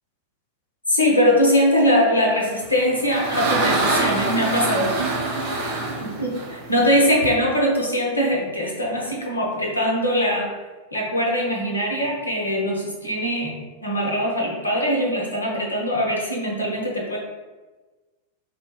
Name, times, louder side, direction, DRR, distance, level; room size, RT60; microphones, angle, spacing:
voice 1, 0.9-5.1 6.0-6.3 6.7-10.5 10.9-17.2, equal, 80° left, -1 dB, 0.7 m, -21 dB
sound 1, 2.6-7.3, right 2 dB, 50° right, 0.8 m, -25 dB
3.6 x 2.1 x 3.5 m, 1.2 s
figure-of-eight pair, 90°, 0 cm